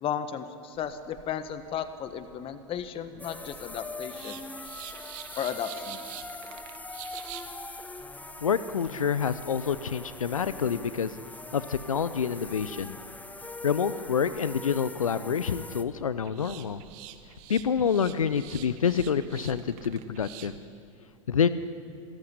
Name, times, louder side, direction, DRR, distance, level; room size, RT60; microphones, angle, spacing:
voice 1, 0.0-4.4 5.4-6.0, left 8 dB, 30° left, 11 dB, 1.4 m, -34 dB
sound 1, 0.7-20.6, right 12 dB, 45° right, 1.8 m, -49 dB
sound 2, 3.2-15.8, left 3 dB, 10° left, 1.0 m, -42 dB
voice 2, 8.4-11.1 11.5-12.9 13.6-16.8 17.5-20.5 21.3-21.5, left 7 dB, 80° left, 14 dB, 0.7 m, -27 dB
27.5 x 14.5 x 9.9 m, 2.5 s
figure-of-eight pair, 90°, 17 cm